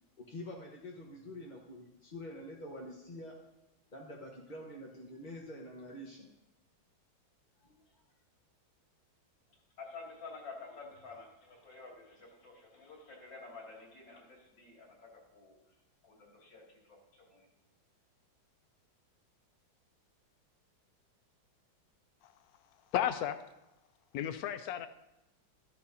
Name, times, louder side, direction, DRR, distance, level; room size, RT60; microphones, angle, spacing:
voice 1, 0.3-3.3 3.9-6.3 7.6-8.0 10.7-10.8, left 1 dB, 30° left, -3 dB, 1.0 m, -47 dB
voice 2, 9.8-14.3 14.6-14.9 15.3-15.5 16.4-16.6 17.3-17.4, left 3 dB, 65° left, -2 dB, 3.2 m, -49 dB
voice 3, 22.9-23.4 24.1-24.9, left 11 dB, 80° left, 10 dB, 0.8 m, -33 dB
13.5 x 13.0 x 2.7 m, 0.93 s
omnidirectional pair, 2.2 m